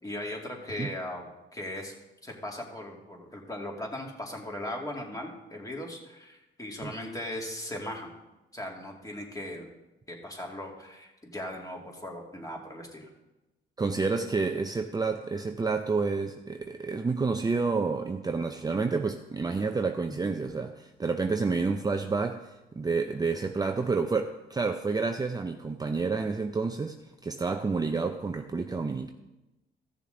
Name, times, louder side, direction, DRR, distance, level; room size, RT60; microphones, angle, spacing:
voice 1, 0.0-1.9 2.2-8.1 8.5-9.7 10.1-13.1, left 1 dB, 15° left, 0 dB, 2.3 m, -38 dB
voice 2, 13.8-29.1, right 4 dB, 20° right, 5 dB, 0.5 m, -29 dB
15.0 x 6.8 x 3.9 m, 1.0 s
cardioid pair, 90°, 20 cm